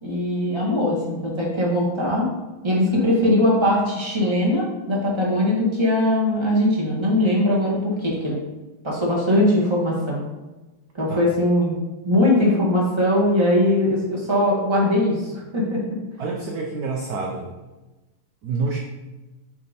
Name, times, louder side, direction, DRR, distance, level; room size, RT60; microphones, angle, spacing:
voice 1, 0.0-2.3 2.6-8.4 8.8-10.2 10.9-11.8 12.0-15.8, left 1 dB, 15° right, -5 dB, 1.5 m, -20 dB
voice 2, 16.2-17.5 18.4-18.8, right 4 dB, 70° right, 0 dB, 0.9 m, -27 dB
7.6 x 3.6 x 4.2 m, 1.1 s
omnidirectional pair, 2.4 m